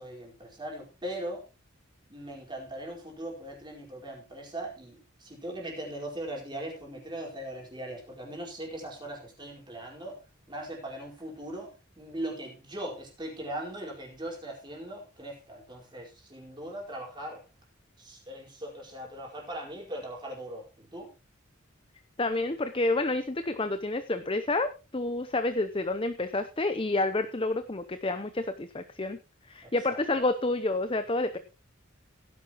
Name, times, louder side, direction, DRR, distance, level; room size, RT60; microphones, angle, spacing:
voice 1, 0.0-1.4 2.1-10.2 10.5-17.4 18.0-21.1 29.6-30.2, right 1 dB, 20° right, -2 dB, 4.6 m, -40 dB
voice 2, 22.2-29.2 29.5-31.4, left 2 dB, 25° left, 10 dB, 0.8 m, -29 dB
17.0 x 11.0 x 3.0 m, 0.29 s
head